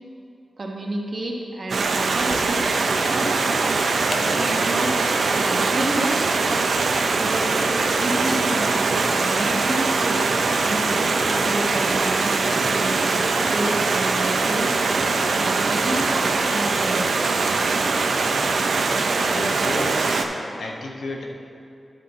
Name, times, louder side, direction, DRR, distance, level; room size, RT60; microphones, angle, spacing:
voice 1, 0.6-2.6 3.0-3.6 4.2-4.9 5.3-6.6 7.1-7.6 8.0-10.3 10.6-13.1 13.5-15.1 15.3-17.3, right 1 dB, 50° right, -1 dB, 1.1 m, -30 dB
Stream, 1.7-20.2, right 3 dB, 75° right, 0.5 m, -22 dB
sound 1, 4.1-6.8, left 2 dB, 50° left, 0.5 m, -38 dB
voice 2, 19.1-21.3, left 2 dB, 85° left, -1 dB, 1.0 m, -33 dB
11.0 x 5.5 x 3.9 m, 2.6 s
wide cardioid pair, 105°, 0 cm